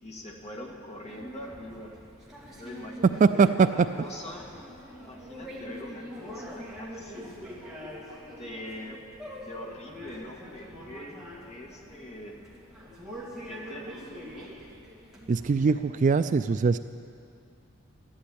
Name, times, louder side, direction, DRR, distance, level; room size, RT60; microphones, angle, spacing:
voice 1, 0.0-2.0 2.6-4.5 4.9-7.4 8.4-9.0 9.4-11.2 11.5-12.4 13.4-14.5, left 1 dB, 30° left, 0 dB, 2.0 m, -43 dB
sound 1, 1.1-15.7, equal, 5° right, 2.5 m, -44 dB
voice 2, 3.2-3.7 15.3-16.8, right 5 dB, 35° right, 12 dB, 0.3 m, -21 dB
14.5 x 11.5 x 8.6 m, 2.4 s
head